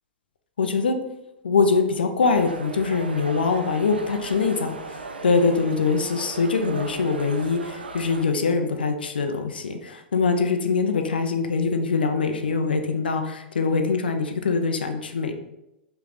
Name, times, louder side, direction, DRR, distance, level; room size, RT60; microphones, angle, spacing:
voice 1, 0.6-1.0 1.4-4.8 5.2-15.3, left 4 dB, 70° left, 6 dB, 0.7 m, -23 dB
sound 1, 2.2-8.3, right 3 dB, 75° right, 0.6 m, -37 dB
5.8 x 4.5 x 4.0 m, 0.92 s
figure-of-eight pair, 100°, 5 cm